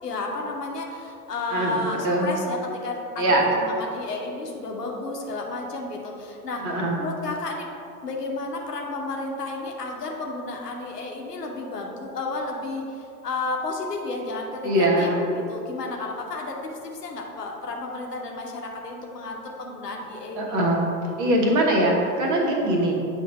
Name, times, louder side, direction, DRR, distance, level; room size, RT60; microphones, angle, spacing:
voice 1, 0.0-7.7 8.0-20.6, left 3 dB, 80° left, 0 dB, 0.9 m, -32 dB
voice 2, 6.6-7.0 14.6-15.2 20.4-20.9 21.2-22.9, right 1 dB, 40° right, -1 dB, 1.3 m, -22 dB
7.9 x 2.7 x 5.3 m, 2.6 s
figure-of-eight pair, 75°, 47 cm